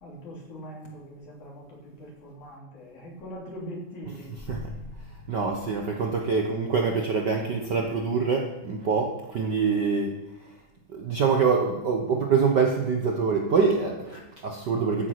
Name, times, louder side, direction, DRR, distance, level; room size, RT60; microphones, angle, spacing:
voice 1, 0.0-4.4, equal, 70° left, -2 dB, 4.6 m, -42 dB
sound 1, 4.4-6.6, left 2 dB, 5° left, 1.0 m, -42 dB
voice 2, 5.3-10.1 10.4-10.5 10.9-15.1, right 5 dB, 80° right, 2 dB, 0.9 m, -25 dB
14.0 x 7.8 x 5.9 m, 1.0 s
omnidirectional pair, 3.6 m